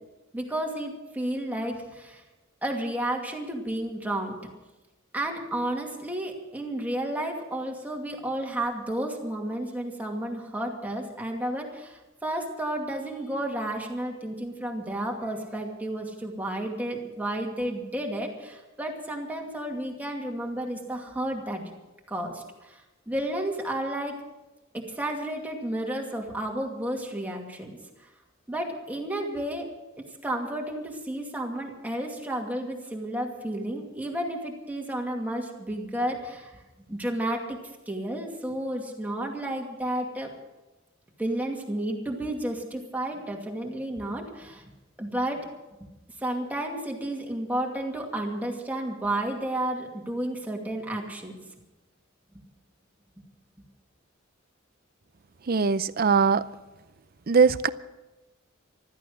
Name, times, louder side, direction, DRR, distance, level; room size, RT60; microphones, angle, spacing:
voice 1, 0.3-2.2 2.6-4.3 5.1-21.6 22.1-22.8 23.1-24.2 24.7-27.8 28.5-29.7 30.2-36.5 36.9-37.6 37.9-40.3 41.2-44.7 45.0-45.5 46.2-51.4, right 1 dB, 10° right, 0 dB, 2.4 m, -32 dB
voice 2, 55.5-56.4 57.3-57.7, right 5 dB, 50° right, 15 dB, 0.6 m, -21 dB
15.5 x 13.5 x 6.4 m, 1.1 s
head